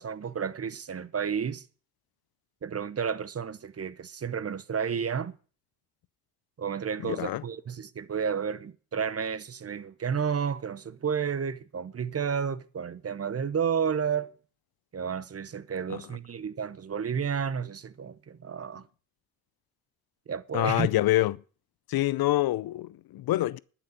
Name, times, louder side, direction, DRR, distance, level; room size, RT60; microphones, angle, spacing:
voice 1, 0.0-1.6 2.6-5.3 6.6-14.3 14.9-18.8 20.3-20.9, right 7 dB, 35° right, 0.9 m, -31 dB
voice 2, 7.0-7.4 15.9-16.0 20.5-21.4 21.9-23.6, left 15 dB, 60° left, 0.6 m, -26 dB
11.5 x 6.1 x 9.1 m
supercardioid pair, 65°, 42 cm